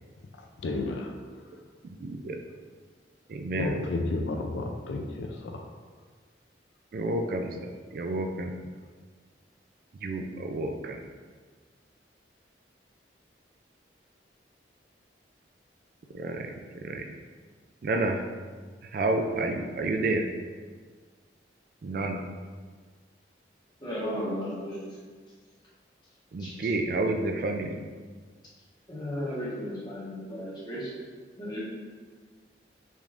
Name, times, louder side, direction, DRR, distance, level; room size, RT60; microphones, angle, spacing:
voice 1, 0.6-1.2 3.6-5.7, left 2 dB, 75° left, 3 dB, 0.4 m, -32 dB
voice 2, 1.8-2.4 3.3-3.8 6.9-8.5 10.0-11.0 16.1-17.1 17.8-18.2 18.9-20.3 21.8-22.2 26.3-27.8, right 2 dB, 50° right, 5 dB, 0.3 m, -30 dB
voice 3, 23.8-25.0 26.4-26.7 28.9-30.9 31.4-31.6, equal, 25° left, -8 dB, 1.3 m, -35 dB
5.0 x 3.4 x 2.5 m, 1.6 s
head